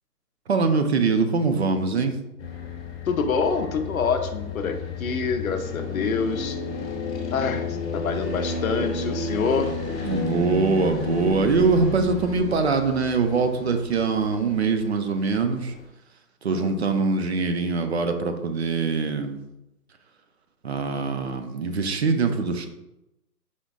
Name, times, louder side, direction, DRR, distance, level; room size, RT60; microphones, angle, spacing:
voice 1, 0.5-2.2 7.5-7.6 10.0-15.7 16.4-19.4 20.6-22.7, right 4 dB, 45° right, 7 dB, 0.5 m, -23 dB
sound 1, 2.4-15.8, left 3 dB, 45° left, 1.1 m, -32 dB
voice 2, 3.1-6.6 7.3-9.7 16.5-16.9, left 5 dB, 60° left, 7 dB, 0.6 m, -26 dB
5.0 x 3.8 x 2.4 m, 0.91 s
hypercardioid pair, 145°, 48 cm